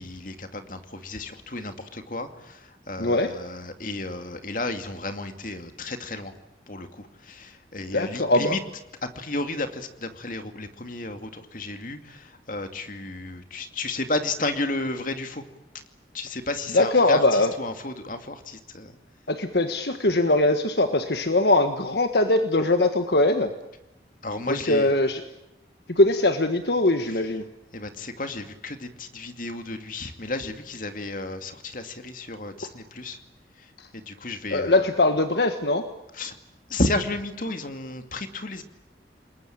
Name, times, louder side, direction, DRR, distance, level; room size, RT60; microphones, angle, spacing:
voice 1, 0.0-6.3 6.7-8.6 9.0-15.4 16.1-18.9 24.2-24.9 27.1-27.2 27.7-33.2 33.6-33.7 33.9-34.9 36.1-36.3 36.7-38.6, left 2 dB, 45° left, 7 dB, 2.4 m, -32 dB
voice 2, 3.0-3.4 7.9-8.6 16.7-17.5 19.3-23.5 24.5-25.2 25.9-27.4 33.8-33.9 34.5-35.9, left 2 dB, 65° left, 7 dB, 1.5 m, -21 dB
29.0 x 21.0 x 8.8 m, 0.92 s
head